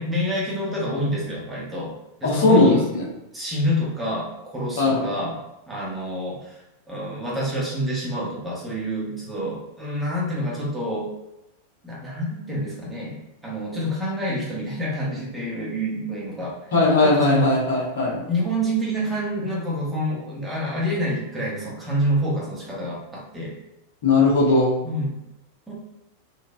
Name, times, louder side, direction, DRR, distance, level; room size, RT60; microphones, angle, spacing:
voice 1, 0.0-2.8 3.3-5.4 5.7-6.6 6.9-11.1 11.8-13.2 13.4-16.6 17.0-17.5 18.3-23.5 24.8-25.2 25.7-25.8, equal, 10° right, -6 dB, 1.0 m, -27 dB
voice 2, 2.2-3.0 4.8-5.1 16.7-18.2 24.0-24.7, left 2 dB, 60° left, -4 dB, 1.1 m, -18 dB
3.9 x 2.5 x 2.2 m, 0.91 s
figure-of-eight pair, 90°, 0 cm